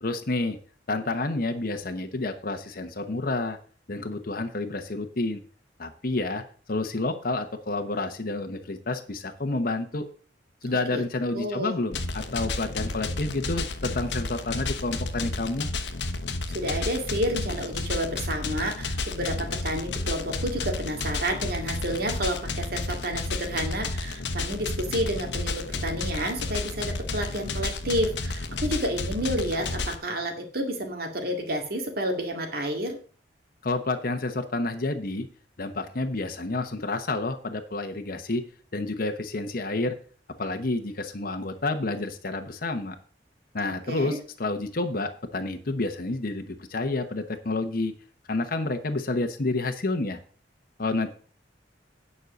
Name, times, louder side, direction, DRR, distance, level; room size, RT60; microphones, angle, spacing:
voice 1, 0.0-0.6 0.9-3.6 3.9-5.4 5.8-6.4 6.7-10.1 10.6-15.7 33.6-35.3 35.6-38.4 38.7-39.9 40.4-43.0 43.5-47.9 48.3-50.2 50.8-51.1, left 2 dB, 55° left, 6 dB, 1.0 m, -29 dB
voice 2, 11.3-11.7 16.5-33.0 43.9-44.2, equal, 60° right, 3 dB, 2.4 m, -30 dB
sound 1, 11.9-30.0, left 3 dB, 85° left, 1.1 m, -31 dB
9.5 x 5.5 x 6.4 m, 0.41 s
head